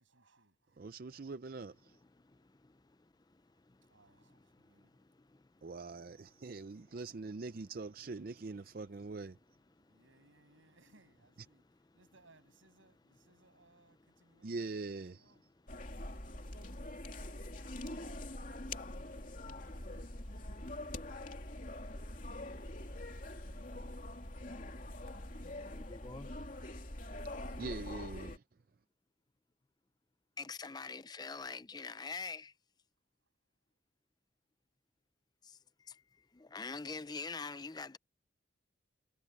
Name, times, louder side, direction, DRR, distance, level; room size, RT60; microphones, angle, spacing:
voice 1, 0.0-0.8 1.1-1.3 3.5-4.9 5.7-6.1 6.4-6.5 7.4-7.8 9.9-11.7 11.9-15.5 16.2-17.0, right 2 dB, 90° right, 7.0 m, -68 dB
voice 2, 0.8-2.0 5.6-9.4 14.4-15.2 27.5-28.4, right 3 dB, 50° right, 0.5 m, -43 dB
sound 1, 15.7-28.4, left 1 dB, 40° left, 3.0 m, -44 dB
voice 3, 25.7-26.3 30.4-32.5 36.4-38.0, left 4 dB, 20° left, 0.5 m, -43 dB
head